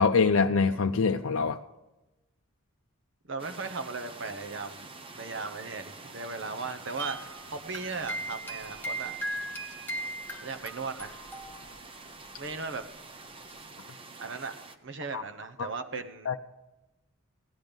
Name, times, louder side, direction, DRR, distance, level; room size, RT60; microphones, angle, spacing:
voice 1, 0.0-1.6 15.1-15.2 15.6-15.7 16.3-16.4, left 5 dB, 80° left, 5 dB, 0.5 m, -24 dB
voice 2, 3.3-9.1 10.4-11.2 12.4-12.8 14.2-14.5 14.8-16.3, right 4 dB, 60° right, 8 dB, 1.0 m, -37 dB
sound 1, 3.4-14.8, right 3 dB, 25° right, 0.8 m, -47 dB
sound 2, 7.0-12.0 12.3-12.4 13.5-13.6, right 1 dB, 10° left, 0.9 m, -38 dB
16.5 x 10.5 x 5.3 m, 1.0 s
head